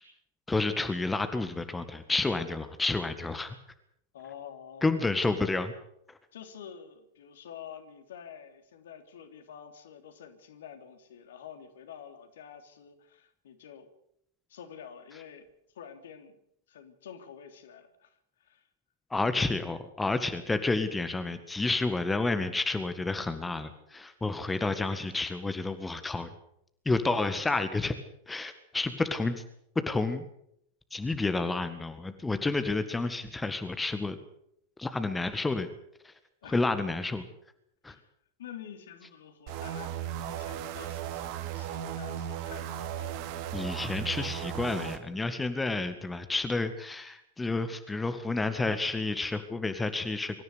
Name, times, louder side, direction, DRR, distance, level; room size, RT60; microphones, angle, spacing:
voice 1, 0.5-3.6 4.8-5.7 6.1-6.2 19.1-26.3 26.8-27.9 28.3-29.4 29.9-30.3 30.9-34.2 34.8-35.7 36.0-36.1 36.5-37.3 37.8-37.9 43.5-50.4, left 3 dB, 10° left, 10 dB, 1.8 m, -30 dB
voice 2, 4.1-5.5 6.3-13.9 14.5-16.4 16.7-18.7 36.4-36.6 37.9-38.1 38.4-43.4, left 8 dB, 60° left, 7 dB, 3.3 m, -48 dB
sound 1, 39.5-45.0, right 10 dB, 45° right, 2.6 m, -36 dB
24.5 x 14.5 x 8.4 m, 0.73 s
figure-of-eight pair, 90°, 0 cm